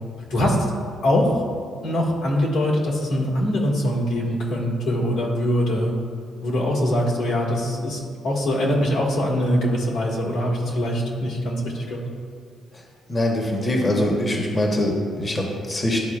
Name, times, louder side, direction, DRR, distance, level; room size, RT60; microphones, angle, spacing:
voice 1, 1.0-1.5 1.8-5.9 6.4-12.0, equal, 80° left, -4 dB, 1.6 m, -23 dB
voice 2, 13.1-16.0, left 1 dB, 25° left, -1 dB, 1.1 m, -23 dB
11.5 x 4.1 x 2.4 m, 2.1 s
cardioid pair, 90°, 0 cm